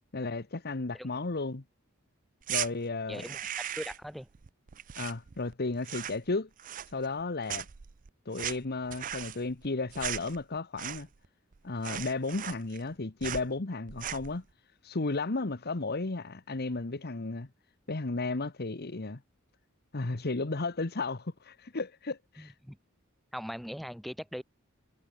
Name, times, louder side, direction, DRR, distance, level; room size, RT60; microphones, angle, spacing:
voice 1, 0.1-1.6 2.5-3.3 5.0-6.5 6.9-7.7 8.3-11.1 11.6-14.4 14.8-17.5 17.9-19.2 19.9-22.5, left 3 dB, 50° left, 1.1 m, -34 dB
sound 1, 2.4-2.7 3.1-4.1 4.3-5.5 5.8-6.3 6.6-7.2 7.5-11.3 11.5-11.6 11.8-12.9 13.2-13.5 13.9-14.4, right 10 dB, 40° right, 0.5 m, -38 dB
voice 2, 3.1-4.3 22.4-22.8 23.3-24.4, equal, ahead, 3.3 m, -40 dB
head